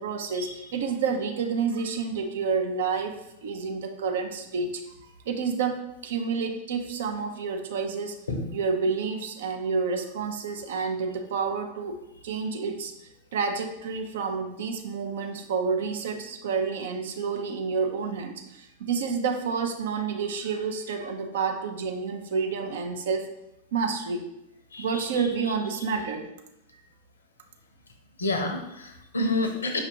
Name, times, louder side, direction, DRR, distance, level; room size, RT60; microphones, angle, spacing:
voice 1, 0.0-4.9 5.3-8.2 8.5-12.0 12.2-12.9 13.3-23.3 23.7-24.2 24.8-26.3, right 5 dB, 60° right, 5 dB, 0.5 m, -29 dB
voice 2, 24.7-25.0 28.2-29.8, left 2 dB, 75° left, 5 dB, 0.5 m, -28 dB
5.3 x 2.4 x 2.7 m, 0.83 s
figure-of-eight pair, 90°, 0 cm